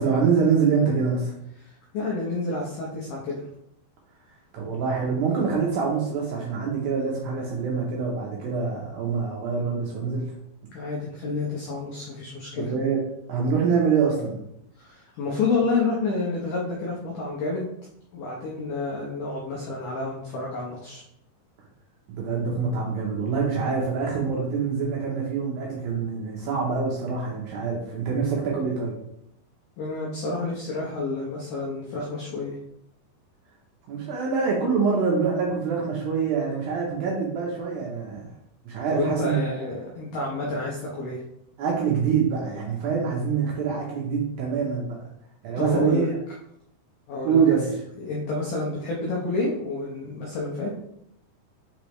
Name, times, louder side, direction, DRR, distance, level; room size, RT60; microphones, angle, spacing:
voice 1, 0.0-1.3 4.5-10.2 12.5-13.0 13.3-14.4 22.1-29.0 33.9-38.3 38.6-39.4 41.6-45.0 45.4-46.1 47.2-47.8, right 5 dB, 75° right, -2 dB, 2.2 m, -25 dB
voice 2, 1.6-3.4 10.7-12.7 14.8-17.7 18.1-21.0 29.8-32.6 38.9-41.2 45.6-46.1 47.1-47.6 48.0-50.7, left 3 dB, 80° left, -3 dB, 1.9 m, -29 dB
6.1 x 5.1 x 3.1 m, 0.76 s
omnidirectional pair, 5.1 m